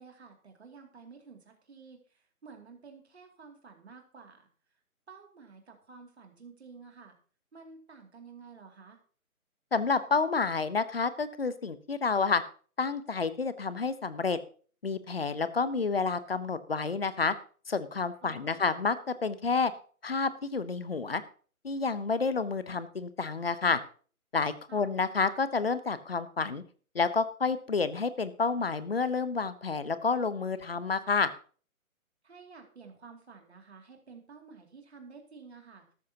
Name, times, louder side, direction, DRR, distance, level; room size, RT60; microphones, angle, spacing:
voice 1, 0.0-4.5 5.1-7.1 7.5-9.0 18.2-18.6 24.7-24.9 32.2-35.8, right 5 dB, 50° right, 3 dB, 2.6 m, -51 dB
voice 2, 9.7-12.4 12.8-14.4 14.8-17.3 17.7-19.7 20.0-21.2 21.6-23.8 24.3-26.6 26.9-31.3, left 4 dB, 45° left, 15 dB, 0.8 m, -29 dB
13.0 x 12.5 x 2.8 m, 0.42 s
hypercardioid pair, 175°, 43 cm